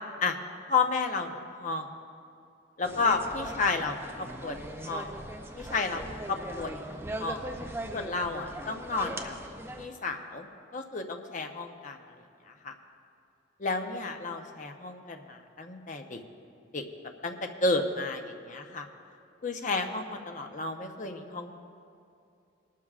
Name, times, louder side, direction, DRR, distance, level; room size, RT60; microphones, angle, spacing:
voice 1, 0.7-1.9 2.8-5.1 5.6-6.0 6.3-7.4 7.9-9.4 9.8-12.0 12.5-12.7 13.6-16.2 16.7-16.8 17.2-18.9 19.4-21.5, left 3 dB, 40° left, 4 dB, 0.8 m, -32 dB
sound 1, 2.8-9.9, right 1 dB, 10° right, 0.6 m, -40 dB
20.5 x 12.0 x 2.5 m, 2.6 s
head